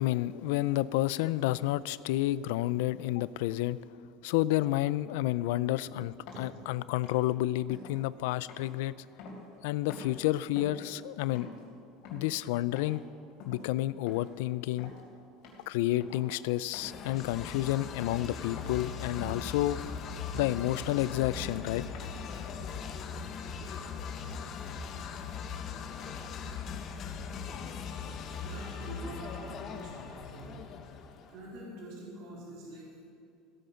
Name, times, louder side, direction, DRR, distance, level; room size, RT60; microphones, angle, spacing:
voice 1, 0.0-3.8 4.2-9.0 9.6-11.5 12.1-13.0 13.5-14.9 15.7-19.8 20.3-21.8, left 16 dB, 80° left, 18 dB, 0.3 m, -30 dB
sound 1, 6.3-6.5 7.0-7.3 7.7-8.0 8.5-9.6 9.9-10.2 10.6-10.9 11.3-11.6 12.0-12.3 12.8-13.0 13.4-13.7 14.1-14.4 14.7-15.0 15.4-15.7 16.0-16.3 16.7-17.0 17.3-17.6 18.0-18.3 18.6-18.9 19.2-19.5 19.8-20.1 20.5-20.8 21.3-21.5 21.9-22.0, left 3 dB, 60° left, 3.2 m, -47 dB
sound 2, 16.8-31.5, left 6 dB, 35° left, 0.9 m, -40 dB
voice 2, 28.3-33.1, right 1 dB, 60° right, -4 dB, 3.8 m, -46 dB
16.0 x 9.3 x 5.7 m, 2.5 s
cardioid pair, 160°, 0 cm